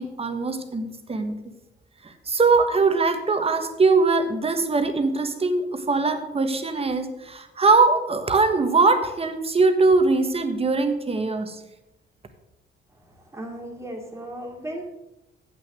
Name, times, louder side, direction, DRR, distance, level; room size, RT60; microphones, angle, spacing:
voice 1, 0.0-1.4 2.0-11.6, right 3 dB, 30° right, 7 dB, 1.3 m, -21 dB
voice 2, 13.1-14.8, right 1 dB, 15° right, 0 dB, 2.6 m, -36 dB
8.3 x 6.4 x 6.2 m, 0.92 s
cardioid pair, 90°, 20 cm